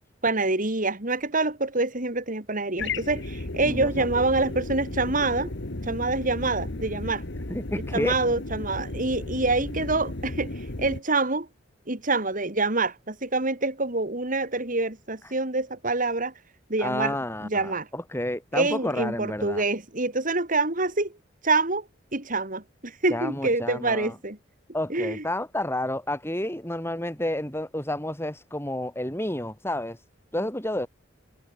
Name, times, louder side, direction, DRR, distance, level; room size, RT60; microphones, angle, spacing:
voice 1, 0.2-5.5 5.8-7.2 7.9-11.5 11.9-16.3 16.7-17.2 17.4-17.9 18.5-21.1 21.4-21.9 22.1-24.4 24.9-25.2, right 3 dB, 45° right, 3.7 m, -26 dB
sound 1, 2.8-11.0, left 2 dB, 65° left, 1.8 m, -34 dB
voice 2, 3.6-4.1 7.5-8.1 16.8-19.6 23.1-24.1 24.7-30.0 30.3-30.9, left 1 dB, 15° left, 6.4 m, -30 dB
head